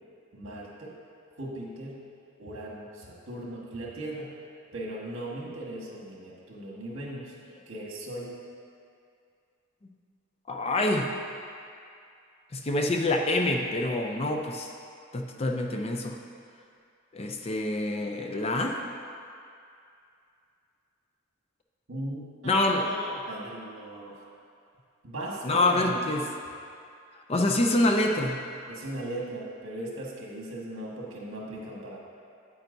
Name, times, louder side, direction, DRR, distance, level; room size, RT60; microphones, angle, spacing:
voice 1, 0.3-1.0 1.4-2.1 2.4-4.4 4.7-7.3 7.6-8.4 21.9-24.2 25.0-26.0 28.7-32.0, right 1 dB, 75° right, -3 dB, 1.6 m, -38 dB
voice 2, 10.5-11.1 12.5-14.7 15.1-16.2 17.1-18.8 22.4-22.8 25.4-26.2 27.3-28.4, left 2 dB, 30° left, 2 dB, 0.5 m, -26 dB
8.8 x 8.7 x 2.7 m, 2.4 s
head